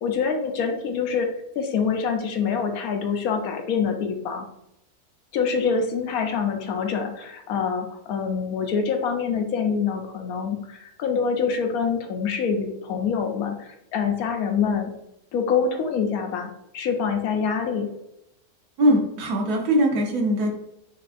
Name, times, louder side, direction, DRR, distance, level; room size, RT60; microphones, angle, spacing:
voice 1, 0.0-1.3 1.5-4.4 5.3-14.9 15.3-17.9, left 6 dB, 70° left, 4 dB, 1.1 m, -25 dB
voice 2, 18.8-20.5, equal, 75° right, 0 dB, 1.4 m, -21 dB
5.9 x 2.8 x 2.5 m, 0.82 s
omnidirectional pair, 1.7 m